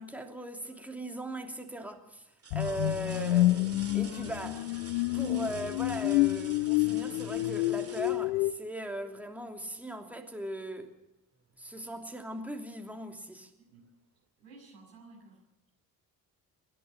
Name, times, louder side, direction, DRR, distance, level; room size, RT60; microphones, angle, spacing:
voice 1, 0.0-4.7 5.1-10.9 11.6-13.5, right 1 dB, 5° right, 3.0 m, -39 dB
sound 1, 0.6-1.1 1.7-1.8 2.4-9.1 10.9-11.0 11.5-12.5 13.8-13.9, right 5 dB, 30° right, 2.3 m, -50 dB
sound 2, 2.5-8.5, left 18 dB, 65° left, 0.7 m, -28 dB
voice 2, 14.4-15.7, right 3 dB, 75° right, 6.7 m, -55 dB
27.0 x 11.0 x 9.1 m
figure-of-eight pair, 45°, 50 cm